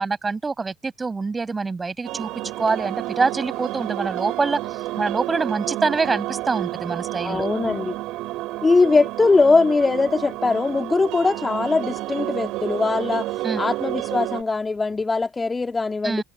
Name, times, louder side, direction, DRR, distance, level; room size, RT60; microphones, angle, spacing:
voice 1, 0.0-2.3 2.6-4.6 5.0-7.5 13.4-13.6 16.0-16.2, right 4 dB, 20° right, 7.6 m, -25 dB
sound 1, 2.0-14.4, right 18 dB, 55° right, 3.9 m, -30 dB
voice 2, 7.2-8.0 8.6-16.2, left 3 dB, 20° left, 2.8 m, -21 dB
figure-of-eight pair, 60°, 0 cm